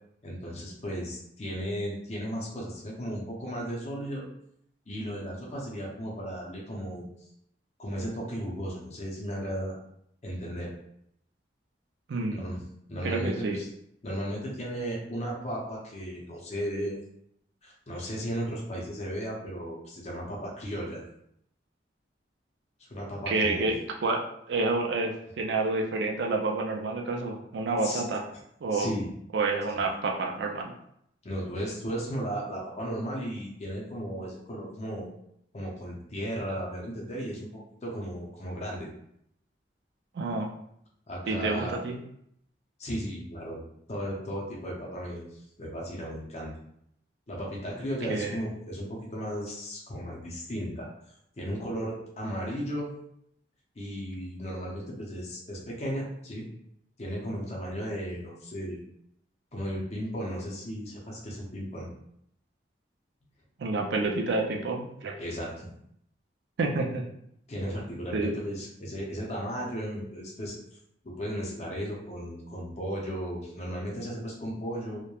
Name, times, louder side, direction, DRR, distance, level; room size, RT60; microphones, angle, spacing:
voice 1, 0.2-4.3 4.9-7.1 7.8-9.7 10.2-10.7 12.3-12.6 12.9-13.7 14.0-17.0 17.6-21.0 22.8-23.7 27.8-28.0 28.7-29.1 29.7-29.8 31.2-35.1 35.5-38.9 41.1-41.8 42.8-43.6 43.9-45.3 45.6-46.5 47.3-50.9 51.4-52.9 53.8-56.5 57.0-58.8 59.5-61.9 65.2-65.7 67.5-70.5 71.0-75.0, equal, 35° left, -3 dB, 0.5 m, -35 dB
voice 2, 12.1-12.4 13.0-13.6 23.3-24.2 24.5-28.2 28.6-28.9 29.3-30.7 40.1-40.5 41.3-42.0 48.1-48.3 63.6-65.1 66.6-67.1 68.1-68.4, right 3 dB, 70° right, 1 dB, 0.4 m, -29 dB
2.9 x 2.1 x 2.3 m, 0.72 s
head